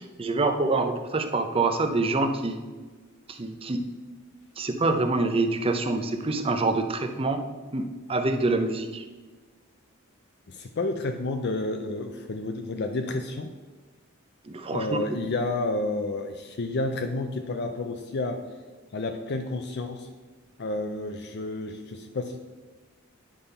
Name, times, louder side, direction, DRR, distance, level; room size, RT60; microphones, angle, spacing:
voice 1, 0.0-2.6 3.3-3.8 4.6-7.4 7.7-7.8 8.1-9.0 14.5-15.0, right 3 dB, 25° right, 6 dB, 0.6 m, -26 dB
voice 2, 10.5-13.5 14.7-18.4 18.9-20.1 20.6-22.4, left 2 dB, 50° left, 5 dB, 0.5 m, -30 dB
9.9 x 3.5 x 5.5 m, 1.3 s
head